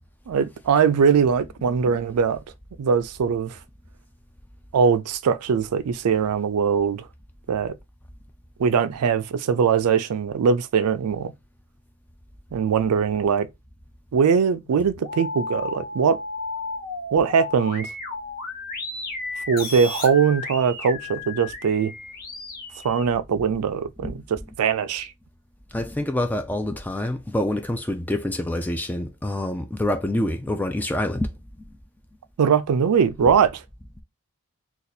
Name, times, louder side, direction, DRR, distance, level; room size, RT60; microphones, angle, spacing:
voice 1, 0.3-2.4 2.8-3.6 4.7-7.0 7.5-7.7 8.6-11.3 12.5-13.5 14.1-16.2 17.1-17.9 19.5-21.9 22.8-25.1 32.4-33.6, right 6 dB, 85° right, 0.4 m, -21 dB
sound 1, 14.6-23.1, left 3 dB, 40° left, 0.8 m, -34 dB
voice 2, 25.7-31.3 31.6-31.7 33.2-33.3, left 1 dB, 10° left, 0.3 m, -26 dB
2.6 x 2.4 x 4.0 m
head